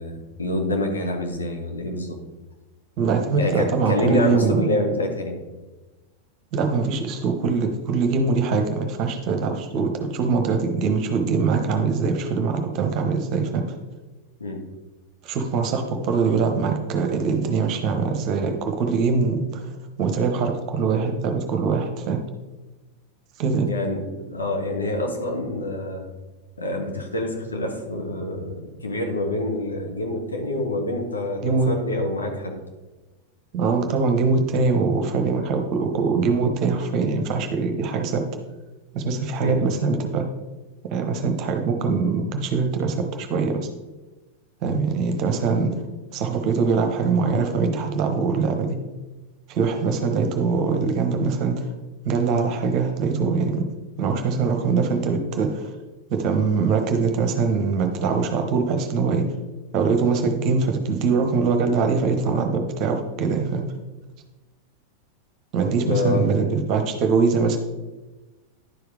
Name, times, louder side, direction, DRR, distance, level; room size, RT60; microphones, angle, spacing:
voice 1, 0.0-2.2 3.4-5.4 14.4-14.6 23.7-26.1 26.6-32.5 39.4-39.6 65.7-66.2, left 2 dB, 75° left, 1 dB, 1.6 m, -27 dB
voice 2, 3.0-4.8 6.5-13.7 15.2-19.7 20.0-22.2 23.4-23.7 31.4-31.7 33.5-38.2 38.9-40.3 40.9-43.7 44.6-45.7 46.1-48.8 49.5-51.7 52.0-53.7 54.0-55.7 56.1-59.3 59.7-63.6 65.5-67.6, right 4 dB, 40° right, 5 dB, 1.0 m, -23 dB
11.0 x 4.9 x 4.8 m, 1.2 s
figure-of-eight pair, 90°, 0 cm